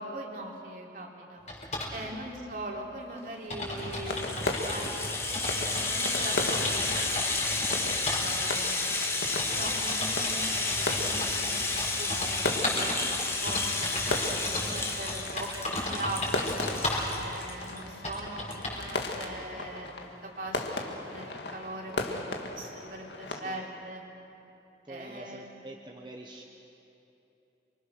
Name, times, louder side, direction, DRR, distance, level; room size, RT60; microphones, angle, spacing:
voice 1, 0.0-1.4 1.9-7.6 7.8-8.8 9.3-11.7 12.0-16.6 17.1-24.0 24.9-25.6, right 1 dB, 50° right, -1 dB, 3.4 m, -41 dB
sound 1, 1.5-1.9 2.8-2.9 3.2-3.3 3.5-5.9 6.2-7.8 8.1-8.2 9.0-17.1 17.6-17.7 18.0-18.9, left 1 dB, 40° left, 4.9 m, -35 dB
sound 2, 3.7-23.4, left 2 dB, 75° left, 2.1 m, -37 dB
Rattle (instrument), 3.7-17.8 18.1-18.2 18.5-18.6, left 3 dB, 15° left, 1.7 m, -32 dB
voice 2, 9.4-9.8 14.2-14.9 23.3-23.7 24.8-26.4, right 1 dB, 25° right, 0 dB, 1.2 m, -47 dB
28.0 x 25.0 x 6.5 m, 2.9 s
head